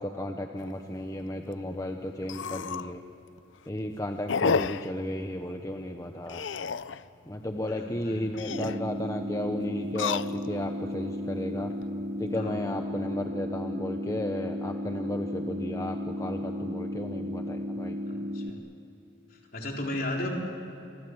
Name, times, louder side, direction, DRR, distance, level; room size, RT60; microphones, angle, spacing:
voice 1, 0.0-3.0 3.7-6.4 7.3-11.7 12.2-18.0, left 1 dB, 20° left, 4 dB, 1.0 m, -34 dB
sound 1, 0.6-0.7 1.2-1.3 1.5-1.6 2.2-2.9 3.4-3.7 4.3-4.9 6.3-7.0 8.2-8.8 9.8-10.7 11.3-11.8, left 5 dB, 85° left, 0.6 m, -31 dB
voice 2, 7.4-8.3 12.3-12.7 18.0-18.6 19.3-20.3, left 1 dB, 50° left, 0 dB, 3.9 m, -36 dB
sound 2, 8.5-18.5, left 1 dB, 30° right, 0.9 m, -34 dB
28.5 x 24.5 x 8.0 m, 2.7 s
head